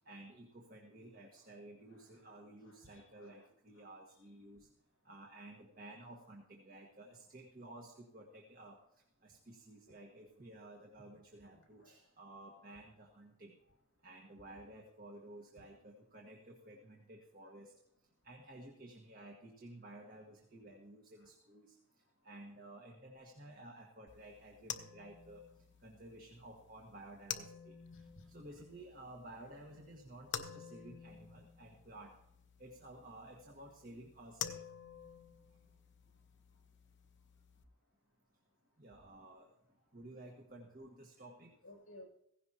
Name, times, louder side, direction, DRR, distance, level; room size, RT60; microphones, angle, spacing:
voice 1, 0.1-4.7 5.0-8.8 9.2-13.6 14.0-17.7 18.2-21.7 22.2-25.4 25.8-27.8 28.3-32.1 32.6-34.6 38.8-39.5 39.9-41.5, right 1 dB, 45° right, 0 dB, 1.6 m, -54 dB
voice 2, 1.9-2.3 2.6-3.5 7.3-7.4 11.8-11.9 27.9-28.2 41.6-42.1, left 1 dB, 80° left, -1 dB, 7.1 m, -58 dB
sound 1, 24.1-37.6, left 8 dB, 60° left, 0.9 m, -50 dB
16.5 x 16.0 x 2.9 m, 0.76 s
head